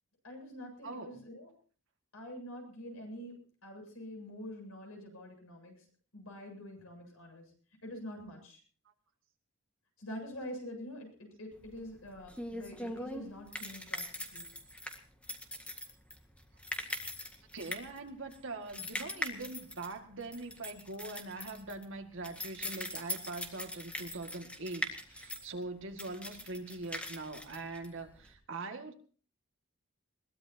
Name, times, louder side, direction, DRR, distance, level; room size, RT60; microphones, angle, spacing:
voice 1, 0.2-1.5 2.1-5.8 6.1-7.5 7.8-8.6 10.0-14.5, equal, 75° left, 2 dB, 7.8 m, -46 dB
voice 2, 0.8-1.2 17.5-28.9, right 3 dB, 60° right, 4 dB, 2.1 m, -42 dB
sound 1, 11.6-28.3, left 1 dB, 5° left, 1.8 m, -42 dB
22.0 x 19.0 x 2.9 m, 0.42 s
head